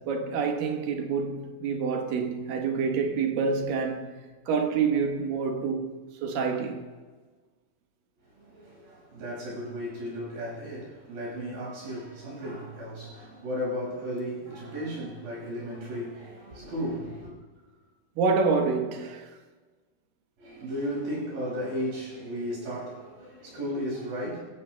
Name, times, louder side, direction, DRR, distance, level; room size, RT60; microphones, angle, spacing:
voice 1, 0.0-4.1 4.5-5.9 6.2-6.9 18.2-19.3, right 5 dB, 70° right, 2.8 m, -27 dB
voice 2, 8.4-17.3 20.4-24.4, equal, 90° right, 7.3 m, -35 dB
22.5 x 16.0 x 2.2 m
omnidirectional pair, 4.3 m